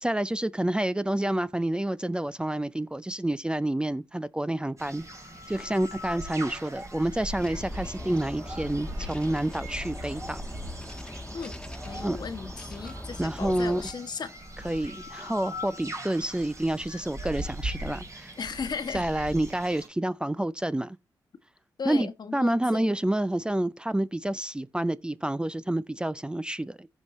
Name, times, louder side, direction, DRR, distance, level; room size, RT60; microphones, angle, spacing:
voice 1, 0.0-5.0 5.5-10.4 12.0-12.2 13.2-13.8 14.6-18.3 18.9-21.0 21.8-26.9, right 1 dB, 10° right, 0.6 m, -28 dB
sound 1, 4.8-19.9, equal, 40° right, 3.2 m, -40 dB
sound 2, 7.3-13.9, left 1 dB, 10° left, 1.3 m, -41 dB
voice 2, 11.8-14.3 18.4-19.1 21.8-22.9, left 5 dB, 55° left, 1.3 m, -36 dB
15.5 x 5.4 x 3.1 m
supercardioid pair, 50°, 8 cm